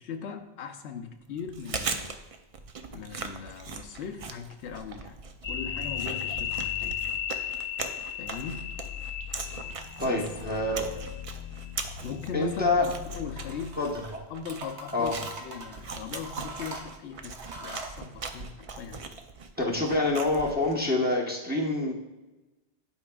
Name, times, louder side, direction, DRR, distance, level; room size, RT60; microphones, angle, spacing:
voice 1, 0.0-2.2 2.9-7.0 8.2-8.7 10.0-10.2 12.0-12.9 13.2-13.8 14.3-19.1, left 6 dB, 85° left, 6 dB, 0.9 m, -39 dB
Chewing mastication, 1.4-20.9, right 4 dB, 50° right, 0.4 m, -40 dB
sound 1, 5.4-14.0, left 9 dB, 40° left, 0.6 m, -36 dB
voice 2, 10.0-10.9 12.3-12.9 13.8-14.0 14.9-15.2 19.6-21.9, left 2 dB, 10° right, -3 dB, 0.9 m, -26 dB
sound 2, 13.3-14.1 14.5-15.8 16.2-18.0, right 2 dB, 85° right, 1.2 m, -42 dB
11.0 x 4.8 x 2.3 m, 1.1 s
omnidirectional pair, 1.1 m